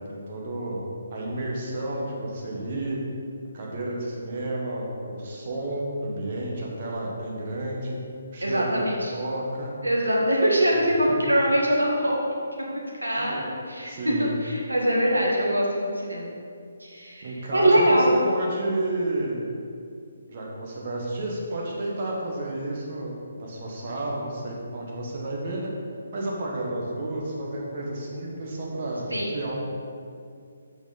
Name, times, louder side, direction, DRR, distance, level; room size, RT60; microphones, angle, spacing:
voice 1, 0.1-0.8 1.1-3.0 3.5-8.0 8.3-8.8 9.1-9.7 11.1-11.2 13.2-13.3 13.8-14.4 17.2-19.4 20.3-25.6 26.1-29.6, right 1 dB, 40° right, -3 dB, 1.6 m, -31 dB
voice 2, 8.4-9.1 9.8-12.2 13.0-13.9 14.2-16.3 16.8-18.1 29.1-29.3, right 1 dB, 85° right, -3 dB, 1.5 m, -23 dB
6.6 x 5.9 x 4.0 m, 2.4 s
figure-of-eight pair, 140°, 0 cm